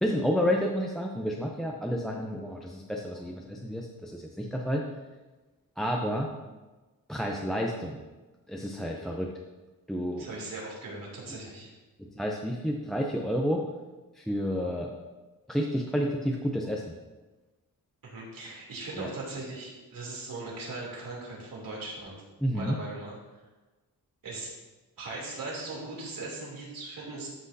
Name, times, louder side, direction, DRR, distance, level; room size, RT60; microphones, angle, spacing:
voice 1, 0.0-4.8 5.8-6.3 7.1-8.0 8.5-9.3 9.9-10.3 12.0-13.6 14.2-14.9 15.5-16.9 19.0-19.1 22.4-22.8, equal, ahead, 0 dB, 0.5 m, -30 dB
voice 2, 10.2-11.7 18.0-22.2 22.5-23.2 24.2-24.5 25.0-27.3, right 2 dB, 65° right, -3 dB, 3.0 m, -39 dB
12.5 x 6.1 x 2.7 m, 1.2 s
wide cardioid pair, 155°, 36 cm